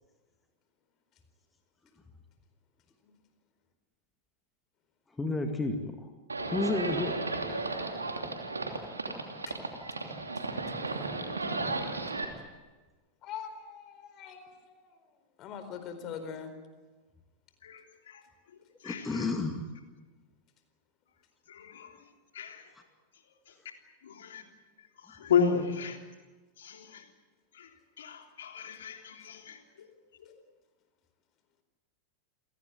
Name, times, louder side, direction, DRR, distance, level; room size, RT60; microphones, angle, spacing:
voice 1, 5.2-6.0 6.5-7.2 14.0-14.1 18.8-19.6, left 3 dB, 10° left, 5 dB, 2.1 m, -31 dB
Livestock farm animals working animals, 6.3-12.2, right 3 dB, 80° right, 3.0 m, -34 dB
voice 2, 9.3-12.0 13.2-14.9 15.4-16.5, left 7 dB, 35° left, 8 dB, 4.4 m, -45 dB
voice 3, 17.6-19.4 21.5-22.7 23.1-23.6 24.0-24.5 24.8-26.0 26.6-27.1 27.5-30.3, left 6 dB, 60° left, 4 dB, 3.3 m, -35 dB
28.0 x 17.5 x 9.6 m, 1.3 s
figure-of-eight pair, 90°, 0 cm